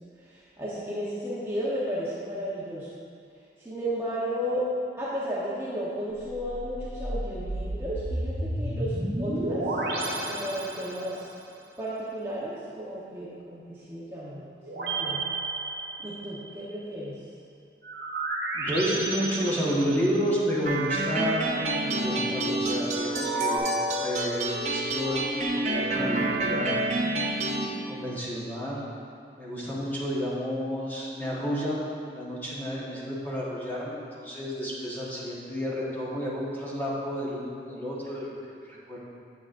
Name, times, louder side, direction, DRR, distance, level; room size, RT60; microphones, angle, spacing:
voice 1, 0.6-2.9 3.6-4.6 5.0-9.6 10.3-11.2 11.8-14.5 14.7-15.3 16.0-17.2, equal, 15° right, -9 dB, 0.9 m, -33 dB
sound 1, 6.2-11.3 14.6-16.4 17.8-20.4 23.1-23.6, right 2 dB, 70° right, 1.3 m, -32 dB
voice 2, 18.5-26.8 27.9-28.8 29.4-38.3 38.9-39.0, equal, 10° left, -7 dB, 1.2 m, -31 dB
sound 2, 20.7-27.7, right 2 dB, 40° right, 0.7 m, -28 dB
9.1 x 7.5 x 2.5 m, 2.3 s
head